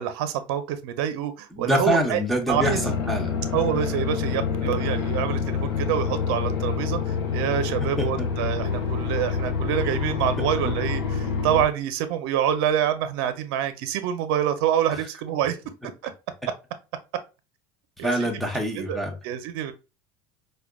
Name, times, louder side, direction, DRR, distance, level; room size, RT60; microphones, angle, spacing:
voice 1, 0.0-2.2 2.5-2.9 3.5-15.6 16.0-16.1 18.0-18.1 18.8-19.0 19.2-19.7, right 10 dB, 75° right, 0.5 m, -26 dB
voice 2, 1.5-3.4 8.0-8.3 10.4-10.7 14.9-15.1 18.0-19.2, equal, ahead, 0.6 m, -26 dB
sound 1, 2.5-11.7, left 6 dB, 85° left, 0.7 m, -27 dB
4.7 x 2.2 x 2.2 m
cardioid pair, 155°, 13 cm